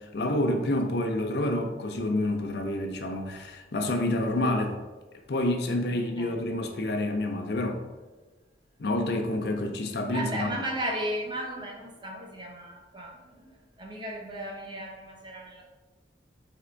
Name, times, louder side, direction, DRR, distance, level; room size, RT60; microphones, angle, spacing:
voice 1, 0.0-4.8 5.3-7.8 8.8-10.5, left 1 dB, 65° left, 4 dB, 0.5 m, -28 dB
voice 2, 5.9-6.4 10.1-15.6, right 1 dB, 25° right, 0 dB, 0.6 m, -35 dB
3.8 x 3.5 x 3.3 m, 1.2 s
head